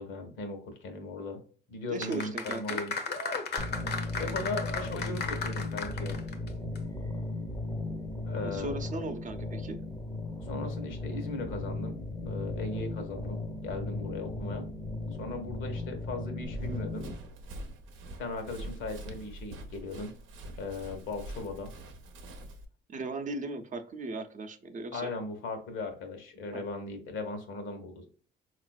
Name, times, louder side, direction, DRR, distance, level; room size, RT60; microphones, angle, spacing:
voice 1, 0.0-1.4 1.7-2.9 4.2-6.2 8.2-8.7 10.4-12.0 12.3-14.7 15.2-17.1 18.2-20.1 20.6-21.7 24.9-28.1, left 3 dB, 80° left, 6 dB, 1.0 m, -38 dB
voice 2, 1.9-2.8 8.3-9.8 22.9-25.1 26.5-26.6, right 3 dB, 40° right, 7 dB, 0.5 m, -37 dB
sound 1, 2.0-6.5 6.8-6.9, left 4 dB, 55° left, 0.7 m, -35 dB
sound 2, 3.6-17.1, left 2 dB, 20° left, 0.6 m, -36 dB
Run, 16.4-22.7, right 1 dB, 80° right, 0.7 m, -44 dB
3.9 x 2.5 x 2.2 m, 0.43 s
cardioid pair, 90°, 20 cm